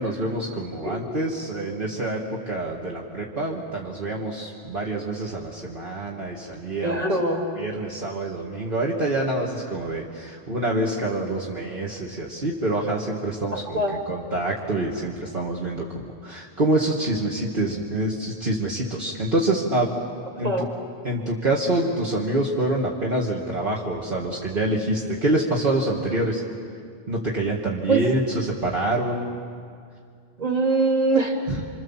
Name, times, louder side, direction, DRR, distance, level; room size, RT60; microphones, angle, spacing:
voice 1, 0.0-7.0 7.6-15.9 16.2-19.9 20.4-20.7 21.0-26.4 27.1-29.3 31.5-31.6, right 1 dB, 55° right, -3 dB, 2.3 m, -26 dB
voice 2, 6.8-7.4 13.5-14.0 20.4-20.7 27.9-28.0 30.4-31.4, right 2 dB, 35° right, 0 dB, 3.0 m, -23 dB
29.5 x 25.5 x 7.4 m, 2.2 s
omnidirectional pair, 1.1 m